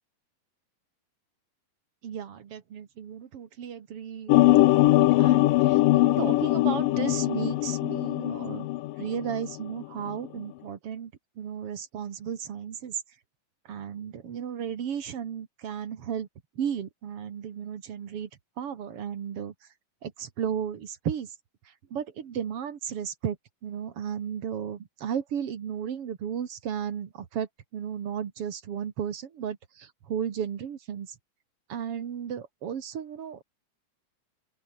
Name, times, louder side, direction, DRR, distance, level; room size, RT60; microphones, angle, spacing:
voice 1, 2.0-8.7 9.0-13.0 13.7-16.3 16.6-18.3 18.6-19.5 20.0-21.3 21.6-23.4 23.6-31.2 31.7-33.4, right 8 dB, 50° right, 2.3 m, -34 dB
sound 1, 4.3-9.5 9.8-10.3, left 17 dB, 85° left, 2.5 m, -22 dB
open air
omnidirectional pair, 3.9 m